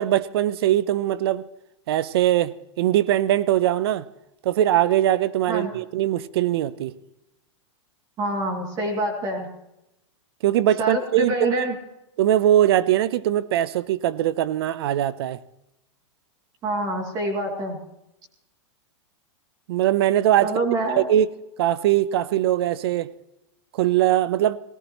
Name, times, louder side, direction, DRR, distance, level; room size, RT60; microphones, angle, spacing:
voice 1, 0.0-1.4 1.9-4.0 4.4-6.9 10.4-11.6 12.2-15.4 19.7-20.5 21.0-21.3 21.6-23.1 23.7-24.6, right 12 dB, 50° right, 0.7 m, -21 dB
voice 2, 8.2-9.5 10.8-11.8 16.6-17.8 20.4-21.0, right 1 dB, 25° right, 2.6 m, -26 dB
18.5 x 18.5 x 3.0 m
supercardioid pair, 165°, 16 cm